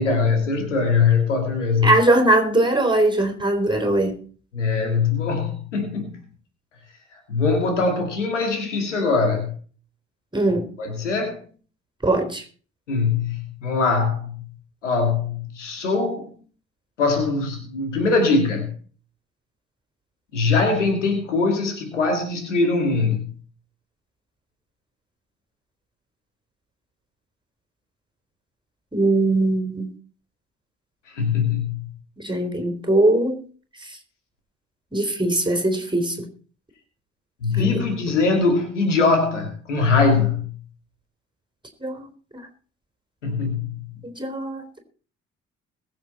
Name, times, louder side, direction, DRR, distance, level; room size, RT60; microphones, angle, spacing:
voice 1, 0.0-1.9 4.5-6.1 7.3-9.5 10.8-11.4 12.9-14.4 14.8-16.3 17.0-18.7 20.3-23.3 31.1-31.9 37.4-40.5 43.2-43.8, left 4 dB, 80° left, 5 dB, 2.3 m, -22 dB
voice 2, 1.8-4.2 10.3-10.7 12.0-12.4 28.9-29.9 32.2-33.5 33.8-33.9 34.9-36.3 37.5-37.7 41.8-42.5 44.2-44.8, right 2 dB, 15° right, 6 dB, 3.7 m, -21 dB
21.5 x 7.5 x 4.2 m, 0.42 s
figure-of-eight pair, 40°, 36 cm